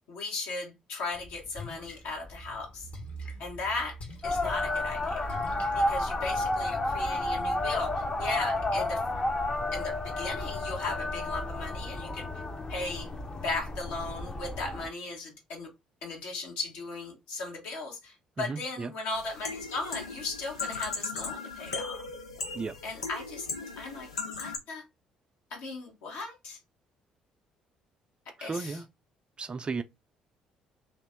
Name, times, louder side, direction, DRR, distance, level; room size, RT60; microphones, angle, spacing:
voice 1, 0.1-2.9 3.4-4.0 4.2-5.4 5.7-9.0 9.7-12.3 12.7-13.1 13.3-15.7 16.0-22.0 22.8-23.5 23.8-24.1 24.4-24.8 25.5-26.6 28.2-28.8, left 3 dB, 70° left, 1.4 m, -37 dB
Splash splatter, 1.1-6.4, equal, 50° left, 1.2 m, -45 dB
sound 1, 4.2-14.9, left 2 dB, 25° left, 0.7 m, -31 dB
voice 2, 18.4-18.9 22.5-22.8 28.4-28.9 29.4-29.8, right 4 dB, 30° right, 0.4 m, -34 dB
sound 2, 19.1-24.6, left 4 dB, 90° left, 0.4 m, -37 dB
2.9 x 2.8 x 3.5 m
hypercardioid pair, 50°, 3 cm